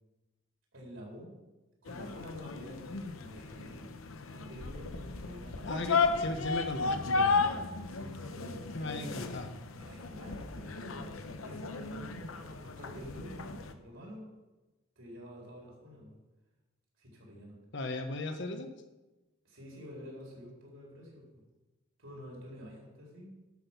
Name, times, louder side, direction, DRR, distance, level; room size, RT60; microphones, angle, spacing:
voice 1, 0.7-1.3 1.8-3.9 4.3-6.4 7.9-9.2 9.8-14.3 15.0-16.2 17.0-17.5 19.4-21.4 22.0-23.3, equal, 75° right, -2 dB, 4.3 m, -48 dB
sound 1, 1.9-13.7, left 4 dB, 85° left, 0.9 m, -34 dB
voice 2, 5.7-7.4 8.7-9.5 17.7-18.7, left 2 dB, 60° left, 6 dB, 1.2 m, -37 dB
12.0 x 6.2 x 6.0 m, 1.1 s
head